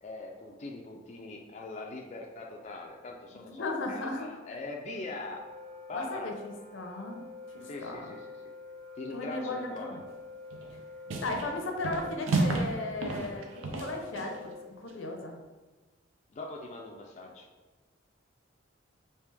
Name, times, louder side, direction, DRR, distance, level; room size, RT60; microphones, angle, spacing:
voice 1, 0.0-5.4 5.9-6.3 7.6-8.2 8.9-10.0 16.3-17.5, left 2 dB, 35° left, 0 dB, 0.3 m, -41 dB
voice 2, 3.3-4.2 5.9-7.2 7.5-8.0 9.1-10.0 11.2-15.4, left 2 dB, 75° left, 3 dB, 0.6 m, -36 dB
Wind instrument woodwind instrument, 5.0-14.9, left 3 dB, 35° right, 0.4 m, -48 dB
sound 1, 10.5-10.8 11.1-11.5 11.8-12.7 13.0-14.4, right 3 dB, 85° right, 0.5 m, -31 dB
3.3 x 2.9 x 3.2 m, 1.3 s
head